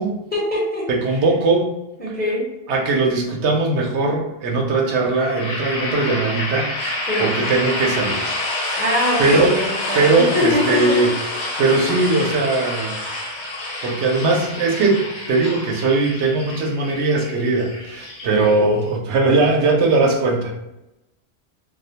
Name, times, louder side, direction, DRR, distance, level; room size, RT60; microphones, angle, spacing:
voice 1, 0.3-0.9 2.0-2.5 7.1-7.3 8.8-11.0 11.5-11.6 18.2-18.7, left 1 dB, 10° left, -6 dB, 0.5 m, -23 dB
voice 2, 0.9-1.7 2.1-2.2 2.7-8.3 8.7-8.8 9.2-9.7 9.9-11.1 11.6-13.1 13.8-20.6, right 3 dB, 85° right, 0 dB, 0.9 m, -19 dB
sound 1, 5.1-18.9, left 2 dB, 75° left, 0.8 m, -28 dB
2.3 x 2.1 x 2.7 m, 0.92 s
omnidirectional pair, 1.1 m